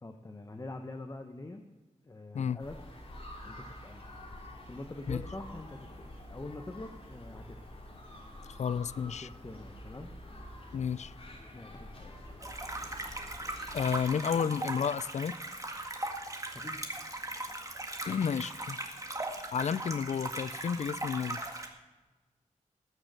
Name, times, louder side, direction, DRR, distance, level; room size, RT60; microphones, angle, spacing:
voice 1, 0.0-1.6 2.0-2.8 3.4-4.1 4.7-7.6 9.0-10.1 11.5-12.3 16.5-16.8, left 2 dB, 25° left, 1.0 m, -45 dB
sound 1, 2.6-14.1, left 1 dB, 45° left, 2.8 m, -47 dB
voice 2, 8.6-9.3 10.7-11.1 13.7-15.4 18.1-18.8 19.5-21.4, left 7 dB, 60° left, 0.4 m, -31 dB
sound 2, 12.4-21.7, right 2 dB, 25° right, 1.9 m, -39 dB
19.5 x 6.5 x 6.7 m
wide cardioid pair, 80°, 13 cm